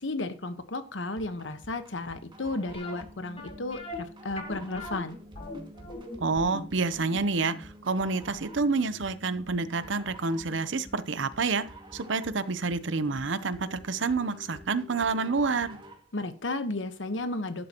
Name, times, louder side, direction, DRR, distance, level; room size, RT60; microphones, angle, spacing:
voice 1, 0.0-5.2 16.1-17.7, left 2 dB, 80° left, 1.2 m, -33 dB
sound 1, 1.2-16.1, right 1 dB, 25° right, 2.2 m, -49 dB
sound 2, 2.7-9.6 9.9-10.0 10.5-10.7 11.0-11.1, left 2 dB, 30° left, 4.0 m, -42 dB
voice 2, 6.2-11.7 11.9-15.7, right 4 dB, 75° right, 0.8 m, -28 dB
12.0 x 11.0 x 3.0 m
head